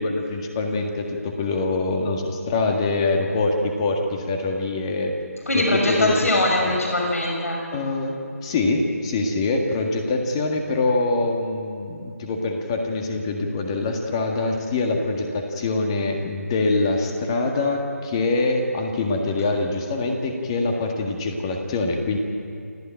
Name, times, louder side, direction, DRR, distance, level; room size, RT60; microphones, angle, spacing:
voice 1, 0.0-5.1 5.5-6.1 6.7-6.8 7.7-8.2 8.4-22.2, left 3 dB, 20° left, 3 dB, 1.6 m, -24 dB
voice 2, 5.5-7.6, left 1 dB, 65° left, 0 dB, 6.1 m, -21 dB
28.5 x 13.0 x 9.0 m, 2.4 s
figure-of-eight pair, 160°, 9 cm